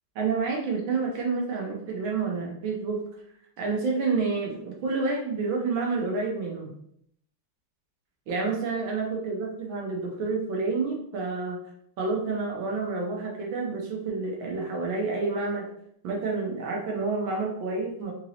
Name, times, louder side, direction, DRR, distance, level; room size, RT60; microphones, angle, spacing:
voice 1, 0.1-3.0 3.6-6.7 8.3-11.6 12.0-15.7 16.0-18.1, right 4 dB, 75° right, -1 dB, 1.5 m, -29 dB
4.0 x 2.9 x 2.7 m, 0.71 s
omnidirectional pair, 2.3 m